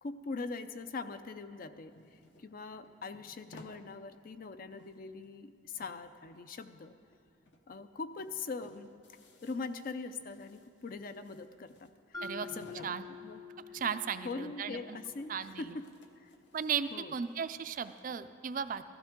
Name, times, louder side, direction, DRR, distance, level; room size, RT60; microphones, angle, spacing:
voice 1, 0.0-6.9 7.7-8.9 9.4-13.4 13.7-13.8 14.2-15.8 16.2-16.3 16.9-17.1, left 4 dB, 45° left, 11 dB, 0.4 m, -42 dB
sound 1, 1.4-3.8 4.2-4.3 4.6-5.5 5.7-7.2 7.4-7.6 7.9-13.0 13.3-14.1 14.4-14.5 14.8-15.5 15.8-18.1, left 1 dB, 60° left, 1.0 m, -60 dB
Mallet percussion, 12.1-16.2, left 4 dB, 20° left, 0.9 m, -48 dB
voice 2, 13.7-15.0 15.3-15.8 16.5-18.8, right 7 dB, 45° right, 11 dB, 0.4 m, -36 dB
15.5 x 13.0 x 3.7 m, 2.4 s
head